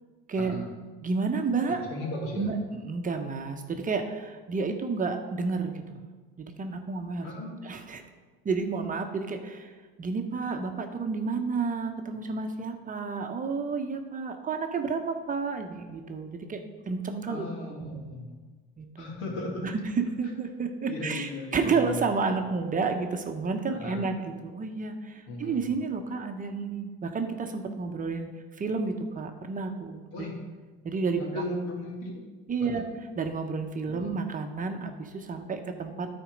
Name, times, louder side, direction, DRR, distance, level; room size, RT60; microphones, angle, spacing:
voice 1, 0.3-0.7 1.7-2.5 7.2-7.5 17.3-18.3 19.0-19.7 20.9-22.1 23.7-24.1 25.3-25.7 30.1-30.4 31.2-32.1 32.6-32.8 33.9-34.1, left 2 dB, 75° left, -1 dB, 2.3 m, -36 dB
voice 2, 1.0-1.8 2.4-6.0 6.4-7.3 7.6-8.0 8.4-9.7 10.0-17.5 17.8-18.0 18.8-19.1 19.7-19.8 20.2-24.1 24.4-28.3 28.6-30.0 30.8-31.4 32.5-32.8 33.2-36.1, right 4 dB, 25° right, 5 dB, 0.8 m, -31 dB
10.0 x 4.4 x 5.1 m, 1.3 s
supercardioid pair, 95°, 29 cm